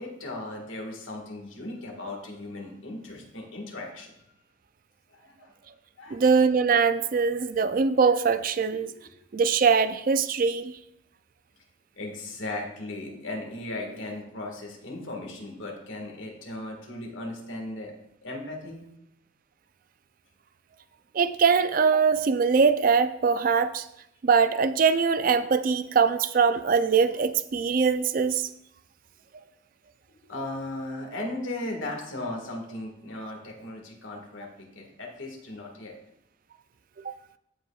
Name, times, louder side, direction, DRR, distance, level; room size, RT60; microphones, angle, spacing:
voice 1, 0.0-4.2 5.1-5.5 6.0-6.2 8.7-8.8 12.0-17.9 18.2-18.8 30.1-35.9, left 2 dB, 85° left, 0 dB, 1.7 m, -37 dB
voice 2, 6.1-8.9 9.3-10.7 21.1-23.9 24.2-28.5 37.0-37.1, right 5 dB, 45° right, 12 dB, 0.4 m, -22 dB
15.0 x 5.5 x 2.4 m, 0.81 s
head